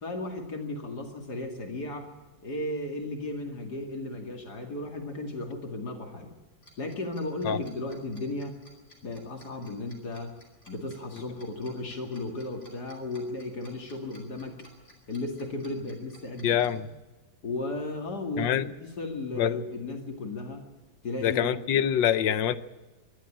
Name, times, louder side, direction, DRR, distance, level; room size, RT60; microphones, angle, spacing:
voice 1, 0.0-2.1 2.4-6.3 6.8-8.5 9.0-10.3 10.7-14.7 15.1-16.6 17.4-18.5 18.8-20.6 21.0-22.0, left 2 dB, 55° left, 3 dB, 2.9 m, -35 dB
Tick-tock, 6.6-16.7, equal, 35° left, 4.9 m, -55 dB
voice 2, 16.4-16.8 18.4-18.7 19.4-19.6 21.2-22.6, left 10 dB, 75° left, 14 dB, 1.5 m, -25 dB
24.0 x 12.0 x 8.7 m, 1.2 s
omnidirectional pair, 2.1 m